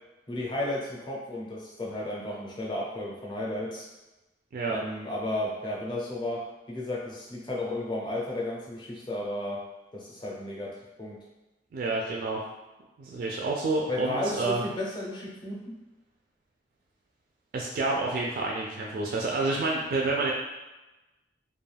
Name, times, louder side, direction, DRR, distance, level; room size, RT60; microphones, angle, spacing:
voice 1, 0.3-3.9 4.6-9.6 9.9-11.2 13.9-15.7, left 1 dB, 25° left, -4 dB, 0.6 m, -33 dB
voice 2, 11.7-12.4 13.0-14.6 17.5-20.3, right 3 dB, 50° right, -2 dB, 0.3 m, -29 dB
2.3 x 2.3 x 3.2 m, 1.1 s
head